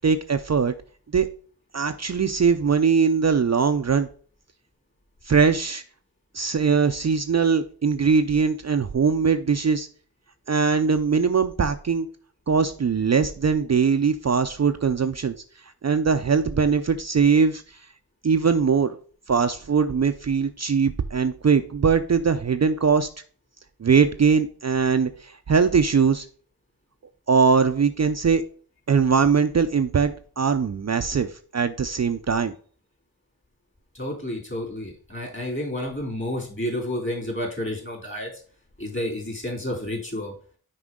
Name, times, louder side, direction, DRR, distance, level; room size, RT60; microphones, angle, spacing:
voice 1, 0.0-0.7 1.1-1.3 1.7-4.1 5.2-5.8 6.3-9.9 10.5-12.1 12.5-15.3 15.8-17.6 18.2-18.9 19.3-23.1 23.8-26.3 27.3-28.4 28.9-32.5, right 5 dB, 45° right, 8 dB, 0.5 m, -21 dB
voice 2, 33.9-38.3 38.8-40.3, left 1 dB, 30° left, 1 dB, 3.1 m, -30 dB
6.1 x 4.9 x 3.7 m, 0.43 s
wide cardioid pair, 45°, 38 cm